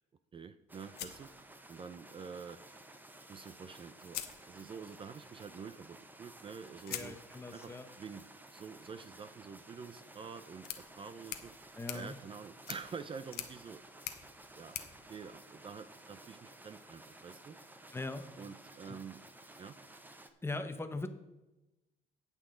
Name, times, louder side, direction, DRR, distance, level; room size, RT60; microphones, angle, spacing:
voice 1, 0.3-1.3 1.7-2.6 3.3-4.2 4.5-7.2 7.5-11.5 11.9-13.8 14.5-14.8 15.1-17.6 18.4-19.2 19.6-19.8, right 6 dB, 30° right, 11 dB, 0.5 m, -47 dB
sound 1, 0.7-20.3, right 2 dB, 10° right, 0.9 m, -55 dB
sound 2, 0.9-2.1 3.4-3.5 4.0-5.0 6.8-16.0, left 11 dB, 70° left, 1.1 m, -48 dB
voice 2, 6.9-7.9 11.8-12.1 17.9-18.3 18.9-19.0 20.4-21.1, left 2 dB, 15° left, 8 dB, 1.0 m, -40 dB
18.0 x 6.1 x 3.8 m, 1.0 s
cardioid pair, 110°, 17 cm